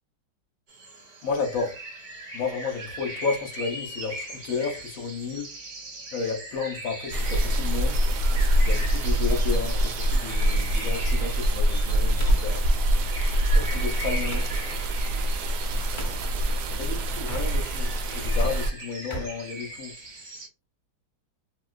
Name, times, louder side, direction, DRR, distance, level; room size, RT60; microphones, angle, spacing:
sound 1, 0.7-20.5, right 1 dB, 50° right, 0.9 m, -40 dB
voice 1, 1.2-1.8 2.3-5.5 6.1-8.1 8.7-12.7 13.5-14.5 16.8-19.9, left 5 dB, 60° left, 0.9 m, -32 dB
sound 2, 7.1-18.7, right 1 dB, 75° right, 1.0 m, -24 dB
sound 3, 9.3-14.6 16.0-16.2 17.1-17.9 18.2-20.2, equal, 25° left, 0.6 m, -42 dB
3.7 x 2.3 x 2.4 m
omnidirectional pair, 2.1 m